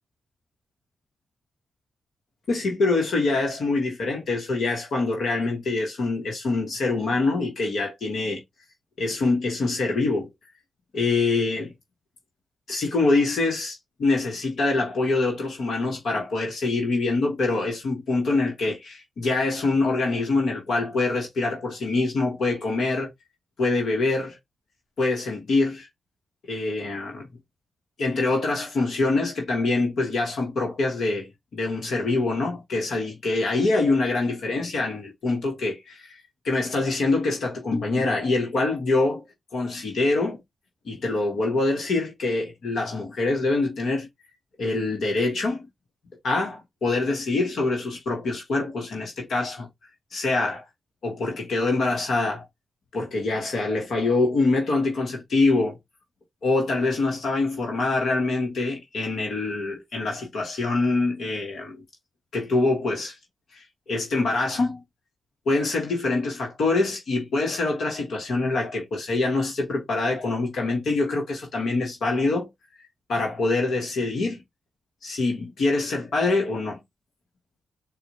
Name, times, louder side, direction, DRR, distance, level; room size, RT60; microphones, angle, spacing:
voice 1, 2.5-8.4 9.0-10.3 10.9-11.7 12.7-23.1 23.6-24.4 25.0-25.9 26.5-27.3 28.0-31.3 31.5-36.1 36.4-39.2 39.5-40.4 40.8-44.1 44.6-45.7 46.2-49.7 50.1-50.6 51.0-52.4 52.9-55.8 56.4-61.7 62.3-63.2 63.5-64.8 65.4-72.5 72.8-74.4 75.0-76.8, left 3 dB, 70° left, 1.3 m, -25 dB
4.3 x 2.4 x 2.7 m
supercardioid pair, 40°, 0 cm